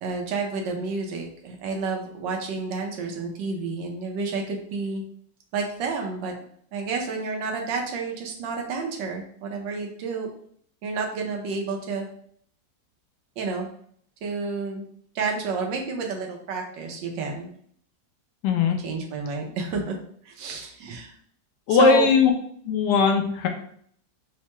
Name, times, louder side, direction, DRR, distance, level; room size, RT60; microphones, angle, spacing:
voice 1, 0.0-5.0 5.5-6.3 6.7-10.3 10.8-12.1 13.4-13.7 14.2-14.9 15.1-17.5 18.8-20.0 20.2-21.1 21.7-22.1, right 4 dB, 85° right, 1 dB, 1.4 m, -30 dB
voice 2, 18.4-18.8 21.7-22.3 22.7-23.5, left 5 dB, 75° left, 4 dB, 1.1 m, -19 dB
4.4 x 2.2 x 2.9 m, 0.62 s
omnidirectional pair, 1.9 m